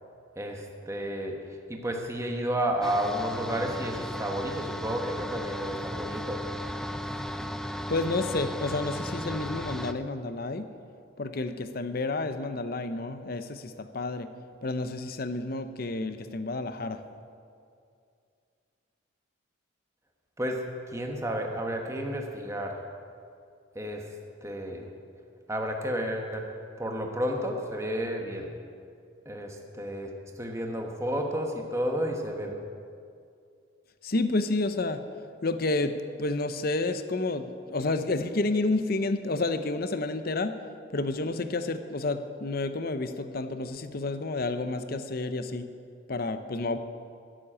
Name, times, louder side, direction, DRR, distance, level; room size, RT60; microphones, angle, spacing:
voice 1, 0.4-1.4 1.7-6.4 20.4-20.6 20.9-22.8 23.7-24.0 24.4-24.9 25.5-26.4 26.8-28.5 29.3-30.1 30.4-32.5, equal, 15° right, 2 dB, 1.2 m, -31 dB
sound 1, 2.8-9.9, equal, ahead, 0.4 m, -35 dB
voice 2, 7.9-10.7 11.2-14.3 14.6-17.0 34.0-35.0 35.4-40.6 40.9-45.7 46.1-46.8, left 2 dB, 45° left, 10 dB, 0.7 m, -30 dB
13.0 x 7.7 x 9.9 m, 2.4 s
head